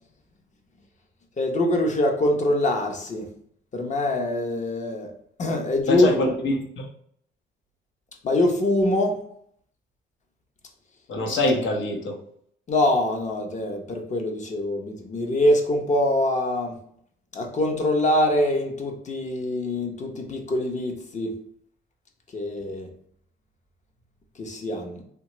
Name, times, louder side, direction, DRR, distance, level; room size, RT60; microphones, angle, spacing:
voice 1, 1.4-3.3 3.7-5.1 5.4-6.1 8.2-9.2 12.7-16.8 17.3-21.3 22.3-22.9 24.4-25.0, left 1 dB, 35° left, 3 dB, 0.7 m, -24 dB
voice 2, 5.9-6.8 11.1-12.2, left 2 dB, 70° left, 2 dB, 0.8 m, -24 dB
3.2 x 2.2 x 2.9 m, 0.65 s
cardioid pair, 90°, 20 cm